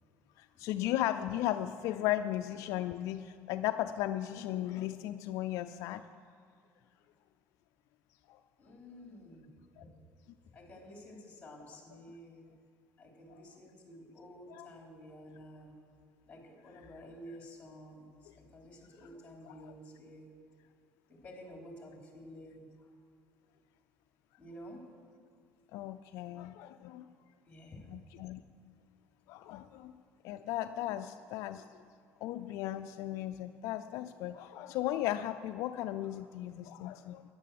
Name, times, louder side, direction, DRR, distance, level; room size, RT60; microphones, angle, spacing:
voice 1, 0.4-6.0 8.3-8.4 9.8-9.9 14.5-14.7 19.4-19.5 25.7-27.1 27.9-28.4 29.3-29.9 30.2-31.7 32.2-37.2, left 13 dB, 75° left, 9 dB, 0.4 m, -36 dB
voice 2, 8.6-9.5 10.5-12.5 13.0-15.8 16.3-20.3 21.1-22.9 24.4-24.8 27.5-27.9 29.4-29.6 36.7-36.9, equal, 20° left, 0 dB, 3.8 m, -51 dB
13.5 x 10.5 x 7.7 m, 2.2 s
cardioid pair, 125°, 6 cm